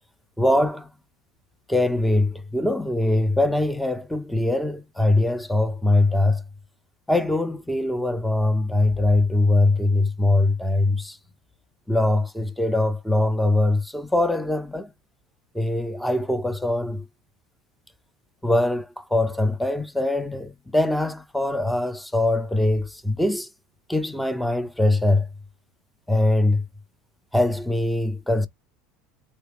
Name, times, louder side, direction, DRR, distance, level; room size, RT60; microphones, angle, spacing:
voice 1, 0.4-0.9 1.7-6.4 7.1-11.2 11.9-14.9 15.5-17.0 18.4-23.5 23.9-25.3 26.1-26.6 27.3-28.5, left 2 dB, 5° left, 0.6 m, -22 dB
3.7 x 2.8 x 3.5 m
supercardioid pair, 115°, 0 cm